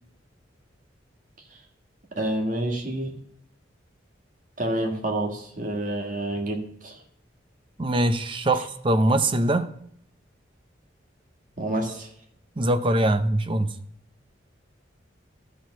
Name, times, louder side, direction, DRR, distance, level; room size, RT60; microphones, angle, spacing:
voice 1, 2.2-3.2 4.6-7.0 11.6-12.1, right 1 dB, 40° right, 1.6 m, -28 dB
voice 2, 7.8-9.7 12.6-13.8, right 1 dB, 25° right, 0.6 m, -22 dB
13.0 x 4.4 x 6.0 m
head